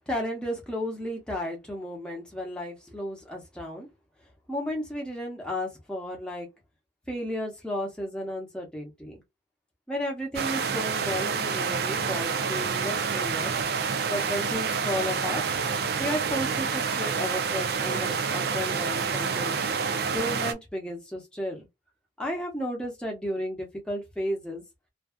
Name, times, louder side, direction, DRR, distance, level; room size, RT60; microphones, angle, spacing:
voice 1, 0.0-3.9 4.5-6.5 7.1-9.2 9.9-13.5 14.1-15.4 16.0-19.6 20.1-21.6 22.2-24.6, equal, 5° left, 0.7 m, -33 dB
sound 1, 10.3-20.5, right 5 dB, 55° right, 0.4 m, -28 dB
2.6 x 2.3 x 2.2 m
head